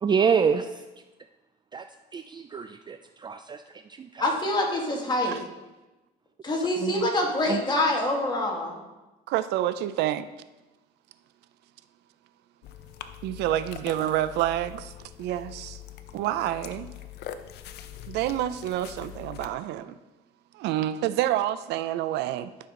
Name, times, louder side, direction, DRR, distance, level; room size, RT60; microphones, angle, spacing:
voice 1, 0.0-0.7 1.7-1.8 2.1-3.0 3.2-3.6 4.0-4.1 6.8-6.9 7.5-7.6, right 6 dB, 25° right, 8 dB, 0.4 m, -25 dB
voice 2, 4.2-5.4 6.4-8.8, left 1 dB, 25° left, 0 dB, 2.1 m, -25 dB
voice 3, 9.3-10.3 13.2-14.9 15.2-15.8 16.1-16.9 18.1-20.0 20.5-22.5, right 13 dB, 85° right, 13 dB, 0.5 m, -28 dB
sound 1, 12.6-19.5, left 11 dB, 75° left, 0.6 m, -43 dB
12.0 x 6.2 x 3.8 m, 1.1 s
cardioid pair, 110°, 17 cm